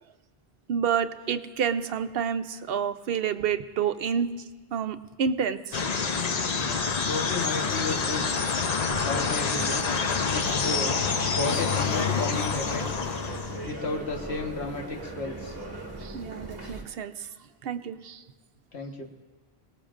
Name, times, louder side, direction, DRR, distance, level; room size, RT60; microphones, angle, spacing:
voice 1, 0.7-4.3 4.7-5.8 16.0-17.3 17.6-18.2, right 7 dB, 70° right, 11 dB, 0.8 m, -29 dB
sound 1, 5.7-13.8, left 5 dB, 45° left, 0.7 m, -27 dB
voice 2, 7.0-8.3 9.0-9.9 10.3-11.0 11.3-12.8 13.6-15.6 18.7-19.1, left 3 dB, 85° left, 2 dB, 1.7 m, -33 dB
sound 2, 8.9-16.8, right 2 dB, 20° right, 1.6 m, -39 dB
22.5 x 18.0 x 2.5 m, 1.4 s
omnidirectional pair, 1.1 m